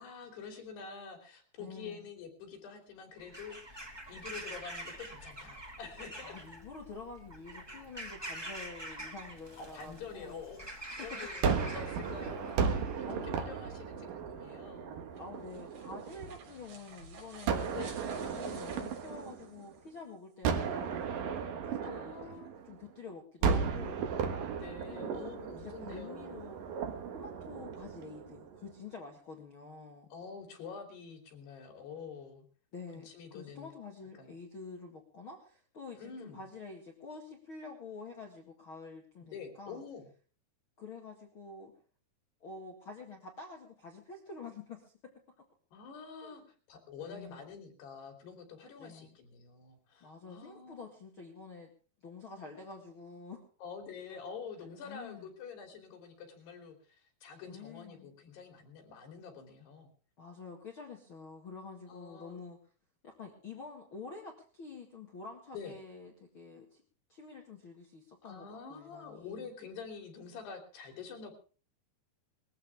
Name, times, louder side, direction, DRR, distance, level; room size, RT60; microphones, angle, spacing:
voice 1, 0.0-6.4 9.6-15.0 17.7-18.0 21.8-22.5 24.6-26.4 30.1-32.5 32.9-33.7 34.2-34.3 36.0-36.5 39.3-40.1 45.7-46.4 46.7-51.0 53.6-59.9 61.9-62.4 65.5-65.8 68.3-71.3, left 6 dB, 85° left, 4 dB, 5.2 m, -47 dB
voice 2, 1.6-2.1 6.2-10.4 11.0-11.2 13.0-13.3 15.2-21.1 21.6-24.0 24.9-25.3 25.6-26.7 27.1-30.1 32.7-39.8 40.8-41.7 42.4-45.1 46.2-46.5 47.0-47.4 48.8-49.2 50.0-51.7 52.0-53.4 54.1-54.2 54.8-55.3 57.5-58.1 60.2-62.6 63.0-66.8 67.1-69.5, left 4 dB, 40° left, 1 dB, 2.1 m, -48 dB
Bird vocalization bird call bird song / Crow, 3.2-13.1, right 1 dB, 10° right, 1.1 m, -46 dB
Gunshot gunfire, 11.4-16.6 17.5-19.9 20.4-22.9 23.4-28.6, right 6 dB, 65° right, 3.0 m, -35 dB
sound 1, 15.0-20.0, right 4 dB, 90° right, 5.4 m, -53 dB
21.0 x 14.5 x 3.5 m, 0.39 s
omnidirectional pair, 4.6 m